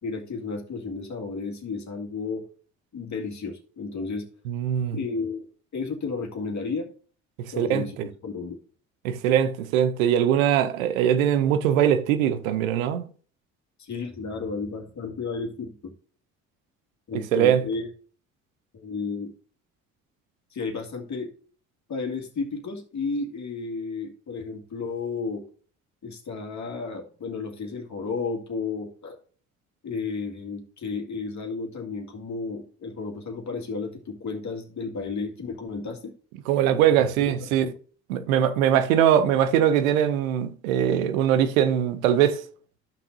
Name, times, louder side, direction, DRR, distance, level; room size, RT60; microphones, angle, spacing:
voice 1, 0.0-2.4 2.9-4.3 4.9-5.5 5.7-6.9 7.5-8.6 13.8-15.9 17.1-17.9 18.7-19.3 20.5-21.3 21.9-25.4 26.0-29.2 29.8-36.1 37.2-37.7 38.7-38.8, left 4 dB, 45° left, 2.1 m, -32 dB
voice 2, 4.5-5.0 7.4-7.8 9.0-13.0 17.3-17.6 36.5-37.7 38.1-42.4, right 10 dB, 85° right, 0.7 m, -21 dB
13.5 x 5.9 x 2.7 m
hypercardioid pair, 55°, 40 cm